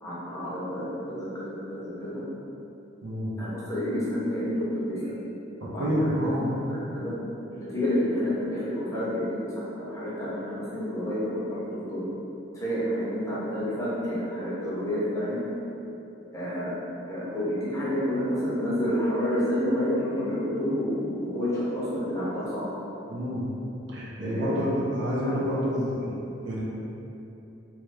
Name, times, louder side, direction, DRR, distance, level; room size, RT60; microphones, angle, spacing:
voice 1, 0.0-2.2 3.4-5.1 5.7-6.3 6.7-7.1 7.5-9.5 9.8-11.4 11.9-12.0 12.5-15.4 16.3-16.7 17.1-22.7 24.2-24.7 25.5-25.6, equal, 15° left, -9 dB, 0.8 m, -29 dB
voice 2, 3.0-3.3 5.8-6.6 23.1-23.5 23.9-26.6, equal, 70° right, -6 dB, 0.6 m, -28 dB
3.1 x 2.2 x 3.2 m, 2.9 s
head